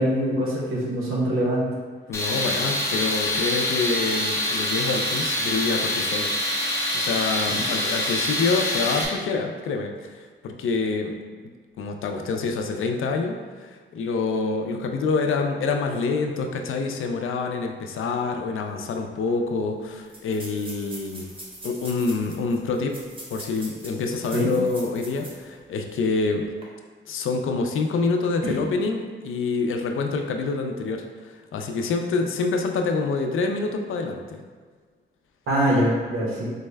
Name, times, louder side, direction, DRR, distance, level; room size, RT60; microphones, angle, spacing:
voice 1, 0.0-1.6 7.5-7.6 24.3-24.5 28.4-28.6 35.5-36.5, equal, 85° right, -4 dB, 1.1 m, -23 dB
voice 2, 2.1-6.3 6.9-10.2 10.4-11.2 11.8-21.3 21.6-23.0 23.3-26.5 27.1-34.4, left 4 dB, 75° left, 4 dB, 0.4 m, -26 dB
Tools, 2.1-9.0, left 1 dB, 15° left, 0.4 m, -25 dB
sound 1, 19.0-19.1 19.3-19.4 20.1-25.5 25.9-26.0 26.5-26.6, right 1 dB, 25° right, 0.7 m, -42 dB
4.1 x 2.1 x 3.3 m, 1.5 s
wide cardioid pair, 180°, 21 cm